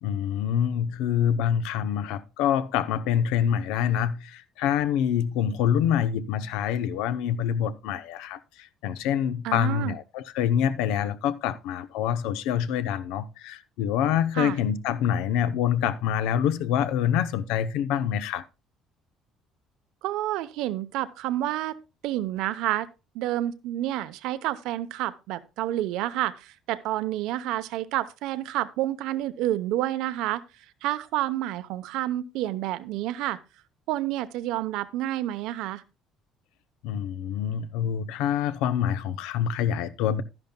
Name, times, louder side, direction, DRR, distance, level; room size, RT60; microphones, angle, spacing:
voice 1, 0.0-18.4 36.8-40.2, left 9 dB, 85° left, 0.7 m, -26 dB
voice 2, 9.4-10.0 14.3-14.6 20.0-21.8 22.0-22.9 23.1-30.4 30.8-33.4 33.9-35.8, right 14 dB, 80° right, 0.8 m, -29 dB
12.0 x 11.0 x 2.2 m
cardioid pair, 140°, 0 cm